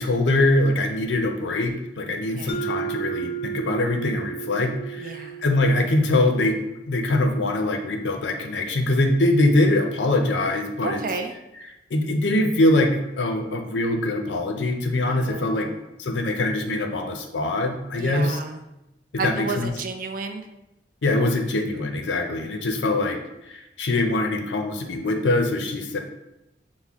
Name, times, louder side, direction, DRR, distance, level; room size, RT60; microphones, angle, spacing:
voice 1, 0.0-6.6 6.9-11.0 11.9-15.7 16.0-18.4 19.2-19.7 21.0-23.2 23.5-26.0, left 2 dB, 85° left, 5 dB, 0.6 m, -23 dB
voice 2, 2.4-2.7 5.0-5.4 10.8-11.3 15.1-15.8 18.0-18.6 19.2-20.4, right 4 dB, 50° right, 6 dB, 0.4 m, -32 dB
Mallet percussion, 2.5-7.0, right 7 dB, 30° left, 0.4 m, -34 dB
5.8 x 2.1 x 3.5 m, 0.92 s
head